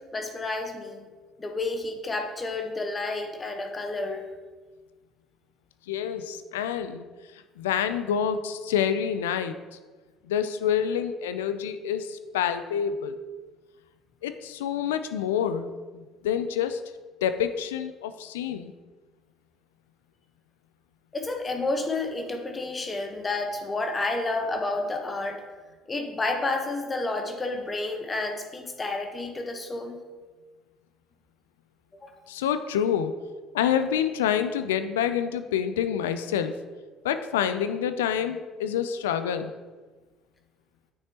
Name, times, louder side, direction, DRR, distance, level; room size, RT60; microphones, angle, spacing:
voice 1, 0.1-1.0 1.4-4.2 21.1-25.4 25.9-30.0 32.0-32.2, left 2 dB, 25° left, 4 dB, 1.1 m, -30 dB
voice 2, 5.9-7.0 7.6-9.5 10.3-13.2 14.2-16.8 17.2-18.7 32.3-33.1 33.5-36.5 37.0-39.5, left 8 dB, 80° left, 10 dB, 0.4 m, -27 dB
9.4 x 6.1 x 2.9 m, 1.3 s
hypercardioid pair, 60°, 0 cm